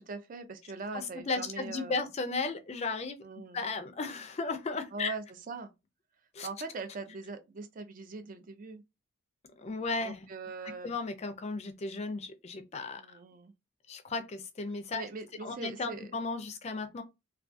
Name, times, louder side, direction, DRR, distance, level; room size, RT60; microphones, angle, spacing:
voice 1, 0.0-2.1 3.2-3.6 4.9-5.7 6.4-8.8 10.0-10.9 13.0-13.5 14.9-16.1, right 3 dB, 45° right, 0.4 m, -41 dB
voice 2, 0.9-3.2 3.5-5.1 6.3-6.5 9.6-10.3 10.8-13.2 13.9-15.1 15.4-17.0, left 3 dB, 35° left, 0.4 m, -35 dB
2.3 x 2.3 x 2.5 m
head